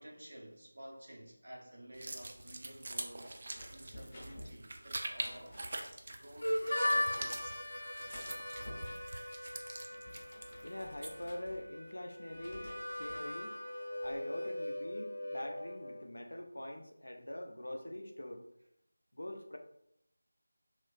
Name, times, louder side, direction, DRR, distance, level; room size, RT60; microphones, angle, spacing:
voice 1, 0.0-5.6 6.2-7.7, right 1 dB, 70° right, 1 dB, 0.8 m, -52 dB
sound 1, 1.9-11.3, right 2 dB, 40° right, 0.3 m, -45 dB
sound 2, 3.5-6.0 6.7-7.6 8.0-9.3 9.7-12.0 12.3-13.3 13.8-14.2, left 1 dB, 20° left, 0.7 m, -53 dB
Harmonica, 6.4-16.0, left 1 dB, 55° left, 0.8 m, -39 dB
voice 2, 10.6-13.6 14.0-18.4 19.1-19.6, left 1 dB, 85° left, 4 dB, 0.5 m, -44 dB
3.1 x 2.9 x 2.4 m, 0.78 s
figure-of-eight pair, 170°, 0 cm